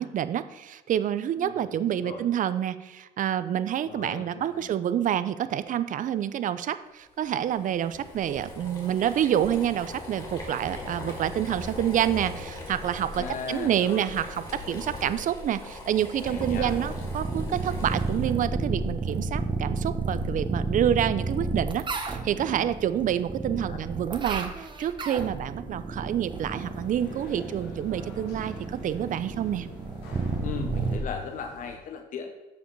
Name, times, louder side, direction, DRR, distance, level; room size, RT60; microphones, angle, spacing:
voice 1, 0.0-29.7, right 10 dB, 50° right, 13 dB, 0.6 m, -28 dB
voice 2, 1.4-2.2 3.9-4.7 13.2-14.1 16.2-16.7 23.5-23.8 30.4-32.3, left 6 dB, 50° left, 4 dB, 0.9 m, -38 dB
Boiling, 7.1-18.4, left 2 dB, 25° left, 3.3 m, -40 dB
sound 1, 16.3-31.0, right 3 dB, 30° right, 1.2 m, -32 dB
sound 2, 26.3-31.8, left 3 dB, 90° left, 2.6 m, -46 dB
13.5 x 5.1 x 4.6 m, 1.1 s
cardioid pair, 110°, 17 cm